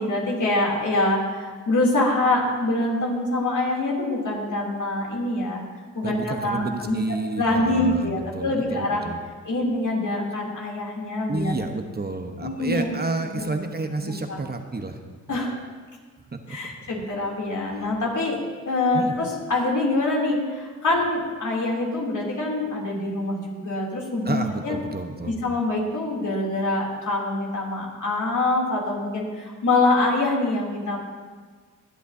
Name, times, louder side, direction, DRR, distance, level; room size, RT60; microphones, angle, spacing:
voice 1, 0.0-5.6 5.9-7.0 7.4-9.0 9.4-11.5 12.4-12.9 13.3-13.5 14.0-14.4 15.3-15.5 16.5-24.8 25.3-31.0, left 2 dB, 70° left, -3 dB, 3.0 m, -25 dB
voice 2, 6.0-9.2 11.3-15.0 16.5-16.6 18.9-19.1 24.2-25.3, right 3 dB, 30° right, 5 dB, 1.0 m, -30 dB
24.0 x 8.2 x 2.7 m, 1.5 s
cardioid pair, 60°, 32 cm